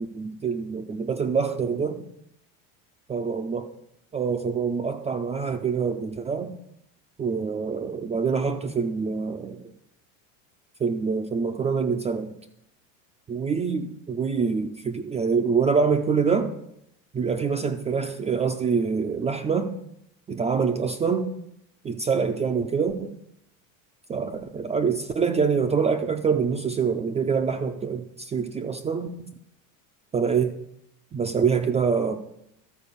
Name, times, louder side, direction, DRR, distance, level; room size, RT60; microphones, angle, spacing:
voice 1, 0.0-2.0 3.1-3.7 4.1-6.5 7.2-9.6 10.8-12.3 13.3-16.5 17.1-19.7 20.3-21.3 21.8-23.1 24.1-29.3 30.1-30.6 31.1-32.2, right 5 dB, 15° right, 5 dB, 0.4 m, -25 dB
13.0 x 4.5 x 6.6 m, 0.76 s
supercardioid pair, 130°, 39 cm